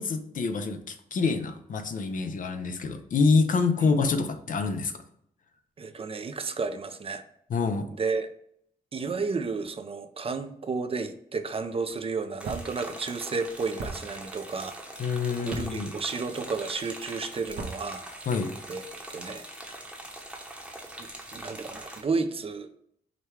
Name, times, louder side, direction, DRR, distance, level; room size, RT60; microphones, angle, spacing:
voice 1, 0.0-4.9 7.5-7.9 15.0-15.9 18.3-18.5, left 4 dB, 60° left, 7 dB, 0.6 m, -26 dB
voice 2, 5.8-7.2 8.0-8.3 8.9-14.8 15.4-18.0 18.7-18.8 19.1-19.4 21.0-22.7, right 4 dB, 40° right, 8 dB, 0.4 m, -32 dB
sound 1, 12.4-22.0, right 1 dB, 5° right, 0.9 m, -42 dB
sound 2, 12.4-12.7 13.8-14.0 15.5-15.7 17.5-17.8, right 3 dB, 85° right, 0.7 m, -35 dB
4.9 x 2.2 x 4.4 m, 0.70 s
cardioid pair, 75°, 15 cm